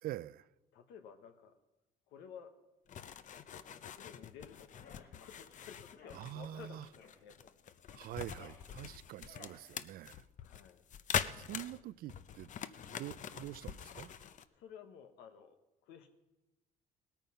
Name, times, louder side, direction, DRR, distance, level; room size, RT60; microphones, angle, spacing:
voice 1, 0.0-0.5 6.1-6.9 7.9-10.2 11.3-14.1, right 13 dB, 60° right, 0.4 m, -46 dB
voice 2, 0.7-1.6 2.1-2.6 3.5-7.5 10.4-10.8 14.5-15.6 15.8-16.1, left 7 dB, 90° left, 1.2 m, -54 dB
sound 1, 2.9-14.4, left 8 dB, 45° left, 0.7 m, -43 dB
sound 2, 4.7-5.1 5.9-6.2 7.0-7.2 8.0-8.6 9.2-9.6, left 5 dB, 65° left, 3.1 m, -58 dB
18.0 x 9.1 x 5.7 m
cardioid pair, 110°, 17 cm